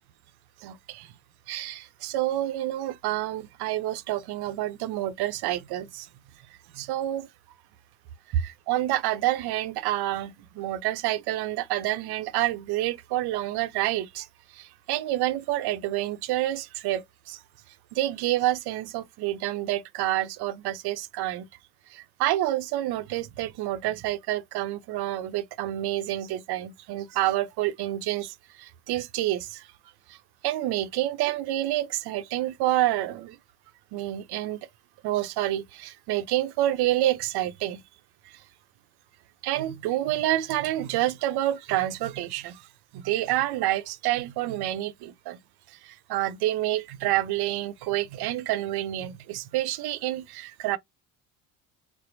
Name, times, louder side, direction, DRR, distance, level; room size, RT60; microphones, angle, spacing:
voice 1, 0.6-1.1 1.5-6.1 6.7-7.3 8.7-14.3 14.5-17.4 17.9-21.5 21.9-29.7 30.1-30.2 30.4-33.4 33.9-34.6 35.0-37.8 39.4-42.6 42.9-45.4 45.8-50.8, right 14 dB, 60° right, 0.7 m, -28 dB
4.3 x 2.0 x 2.6 m
supercardioid pair, 75°, 44 cm